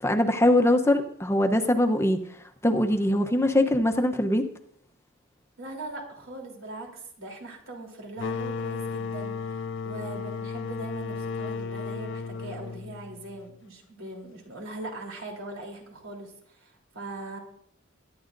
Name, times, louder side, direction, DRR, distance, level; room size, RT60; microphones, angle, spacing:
voice 1, 0.0-4.5, left 1 dB, 15° left, 5 dB, 0.8 m, -22 dB
voice 2, 5.6-17.4, right 2 dB, 80° right, 0 dB, 3.5 m, -41 dB
sound 1, 8.2-13.6, left 4 dB, 65° left, 0.6 m, -34 dB
23.0 x 10.5 x 2.6 m, 0.69 s
head